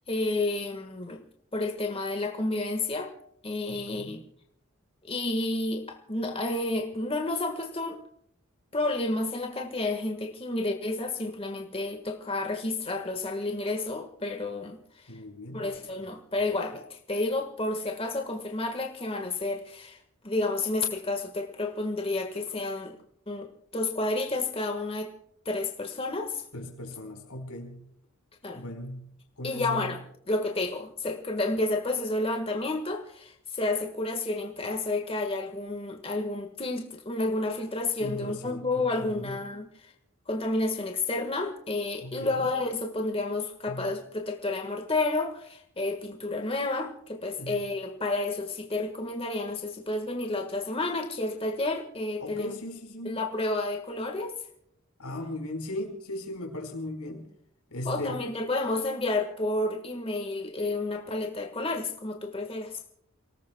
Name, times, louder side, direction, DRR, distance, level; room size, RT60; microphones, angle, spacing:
voice 1, 0.1-1.2 1.5-3.1 3.4-4.2 5.1-8.0 8.7-15.2 15.5-20.0 20.2-23.0 23.3-25.1 25.4-26.4 28.4-28.6 29.4-39.9 40.3-52.5 53.0-54.4 57.8-62.8, left 2 dB, 25° left, 4 dB, 1.5 m, -30 dB
voice 2, 3.7-4.1 15.1-15.7 26.5-27.9 28.5-30.0 38.0-39.4 42.0-42.5 43.7-43.9 47.4-47.7 52.2-53.2 55.0-57.3 57.7-58.2, left 1 dB, 90° left, 4 dB, 4.6 m, -38 dB
29.0 x 18.5 x 2.2 m, 0.71 s
head